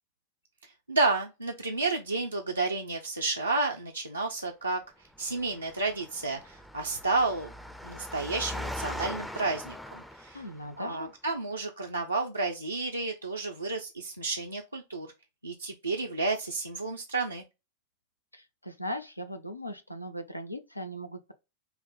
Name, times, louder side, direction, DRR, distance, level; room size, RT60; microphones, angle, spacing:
voice 1, 0.9-4.8 5.2-7.5 7.8-10.4 10.8-15.1 15.4-17.4, right 3 dB, 85° right, 0.6 m, -31 dB
Engine, 5.1-10.8, left 1 dB, ahead, 0.5 m, -41 dB
voice 2, 10.3-11.1 18.3-21.3, equal, 85° left, 0.5 m, -39 dB
5.6 x 2.1 x 4.1 m
figure-of-eight pair, 90°, 0 cm